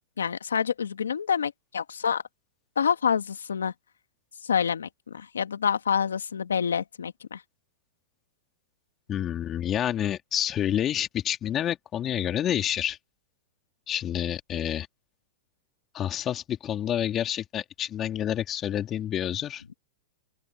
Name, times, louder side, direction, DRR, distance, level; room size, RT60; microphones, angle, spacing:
voice 1, 0.2-2.2 2.8-3.7 4.4-7.4, left 7 dB, 90° left, 1.9 m, -27 dB
voice 2, 9.1-13.0 13.9-14.9 15.9-19.6, left 10 dB, 30° left, 2.5 m, -28 dB
open air
hypercardioid pair, 115°, 0 cm